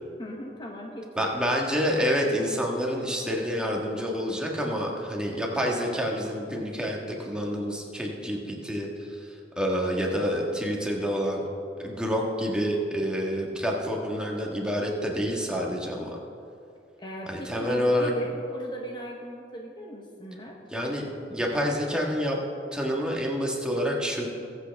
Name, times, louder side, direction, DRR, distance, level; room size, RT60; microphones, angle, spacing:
voice 1, 0.2-1.4 17.0-20.6, equal, 25° left, 0 dB, 1.0 m, -38 dB
voice 2, 1.2-11.4 11.8-16.2 17.3-18.1 20.7-22.4 22.7-24.3, equal, 5° right, -1 dB, 1.5 m, -28 dB
21.5 x 8.1 x 3.5 m, 2.5 s
head